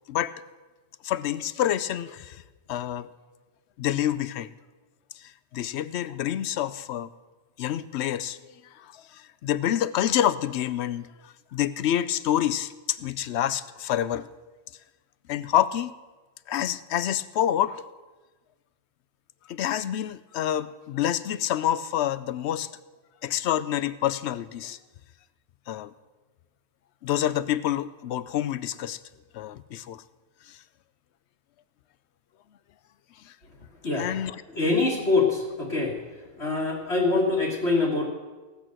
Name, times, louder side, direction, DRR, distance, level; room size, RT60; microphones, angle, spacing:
voice 1, 1.0-2.4 2.7-3.1 3.8-4.5 5.2-7.1 7.6-8.4 8.8-14.3 15.3-15.9 16.5-17.8 19.5-22.7 23.2-24.8 25.7-25.9 27.0-29.0 29.3-30.0 30.5-30.6 33.2-33.3 33.9-34.4, left 11 dB, 65° left, 16 dB, 0.7 m, -27 dB
voice 2, 34.6-35.9 36.4-38.0, left 3 dB, 50° left, -4 dB, 2.1 m, -24 dB
17.5 x 6.4 x 7.6 m, 1.3 s
omnidirectional pair, 1.4 m